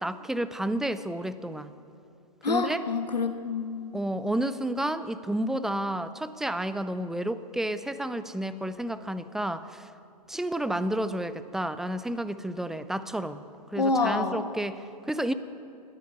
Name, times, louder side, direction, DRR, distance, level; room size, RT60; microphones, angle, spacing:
voice 1, 0.0-1.7 2.5-2.8 3.9-9.9 10.3-13.4 13.7-15.3, right 1 dB, ahead, 13 dB, 0.4 m, -31 dB
voice 2, 2.4-3.9 13.8-14.4, left 4 dB, 85° left, 8 dB, 1.2 m, -27 dB
20.0 x 13.0 x 5.5 m, 2.7 s
hypercardioid pair, 120°, 21 cm